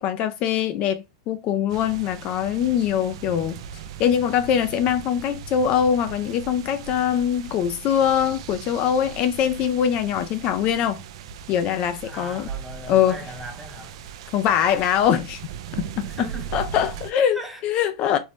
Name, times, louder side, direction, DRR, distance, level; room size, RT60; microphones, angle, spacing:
voice 1, 0.0-3.6 4.0-11.0 11.5-12.5 12.9-13.2 14.3-15.4 16.0-18.2, left 9 dB, 45° left, 0.3 m, -23 dB
sound 1, 1.7-17.1, right 8 dB, 70° right, 0.3 m, -38 dB
voice 2, 12.0-14.0 16.0-16.6 17.3-17.6 18.1-18.2, right 2 dB, 5° right, 0.8 m, -38 dB
2.6 x 2.0 x 3.2 m
hypercardioid pair, 120°, 3 cm